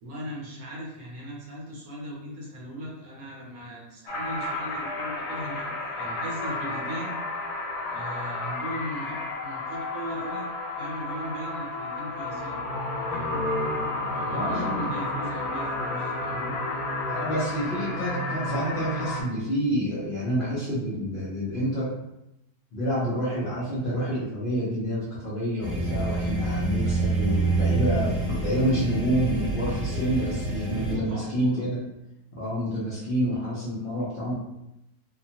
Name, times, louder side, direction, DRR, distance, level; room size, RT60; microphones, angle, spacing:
voice 1, 0.0-7.2 7.9-9.2 9.4-10.5 10.8-12.6 13.1-13.4 14.1-16.5 25.7-26.3 29.9-31.6, equal, 70° right, -3 dB, 1.2 m, -38 dB
sound 1, 4.1-19.2, left 2 dB, 80° left, 1.2 m, -31 dB
voice 2, 14.3-15.0 17.1-21.9 22.7-31.8 32.3-34.3, equal, 50° left, -10 dB, 0.6 m, -28 dB
sound 2, 25.6-30.9, right 3 dB, 25° left, 1.3 m, -27 dB
2.9 x 2.3 x 2.7 m, 0.87 s
omnidirectional pair, 1.7 m